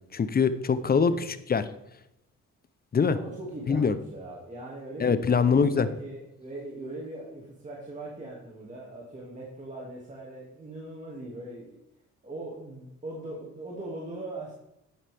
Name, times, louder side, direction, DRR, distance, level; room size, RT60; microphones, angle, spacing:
voice 1, 0.1-1.6 2.9-3.2 3.7-3.9 5.0-5.9, left 5 dB, 30° left, 13 dB, 0.7 m, -23 dB
voice 2, 3.1-11.8 12.2-14.5, right 2 dB, 25° right, -4 dB, 2.3 m, -40 dB
11.0 x 8.7 x 3.5 m, 0.85 s
cardioid pair, 90°, 30 cm